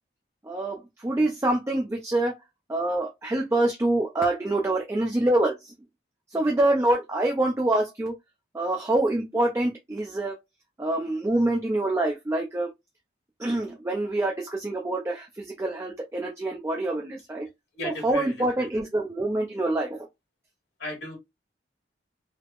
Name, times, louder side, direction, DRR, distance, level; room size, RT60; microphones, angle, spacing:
voice 1, 0.4-2.4 2.7-5.7 6.3-8.1 8.5-10.3 10.8-12.7 13.4-17.5 17.8-20.1, right 2 dB, 15° right, 0.3 m, -26 dB
voice 2, 17.7-18.7 20.8-21.2, left 2 dB, 60° left, 1.2 m, -36 dB
3.4 x 2.0 x 2.3 m
head